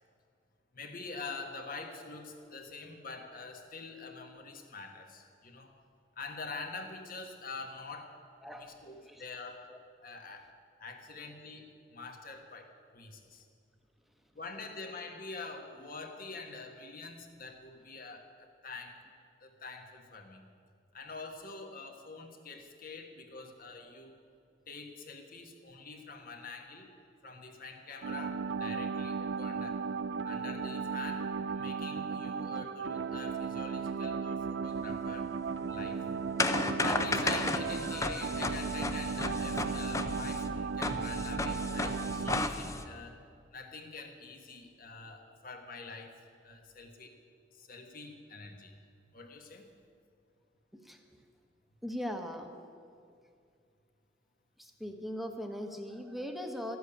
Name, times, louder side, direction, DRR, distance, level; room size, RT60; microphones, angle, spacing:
voice 1, 0.7-5.7 6.1-8.2 8.6-9.7 10.0-10.5 10.8-13.4 14.3-19.0 19.4-20.4 20.9-24.2 24.7-26.9 27.2-29.8 30.2-35.3 35.7-36.0 36.8-43.2 43.5-46.2 46.4-47.1 47.5-48.8 49.1-49.7, left 3 dB, 50° left, 4 dB, 1.6 m, -45 dB
voice 2, 8.4-8.7 9.1-9.2 9.7-9.8 32.6-32.7 34.8-34.9 50.7-51.0 51.8-52.5 54.6-56.8, equal, ahead, 4 dB, 1.1 m, -40 dB
sound 1, 28.0-42.5, right 5 dB, 90° right, 0.5 m, -35 dB
sound 2, 34.8-42.9, left 2 dB, 15° left, 0.6 m, -34 dB
13.5 x 8.0 x 9.9 m, 2.4 s
head